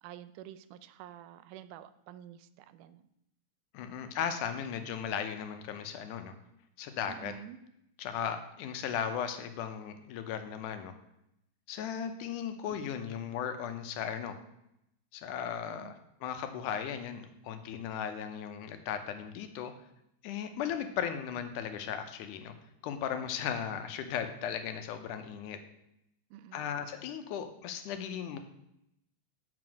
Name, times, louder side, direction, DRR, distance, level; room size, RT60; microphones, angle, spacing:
voice 1, 0.0-3.1 7.1-7.6 15.6-15.9 26.3-26.6, right 11 dB, 90° right, 13 dB, 2.1 m, -49 dB
voice 2, 3.7-6.3 6.8-7.3 8.0-10.9 11.7-14.4 15.1-15.9 16.2-19.7 20.2-22.5 22.8-25.6 26.5-28.4, left 8 dB, 85° left, 8 dB, 2.3 m, -36 dB
7.8 x 4.9 x 6.2 m, 0.80 s
omnidirectional pair, 3.5 m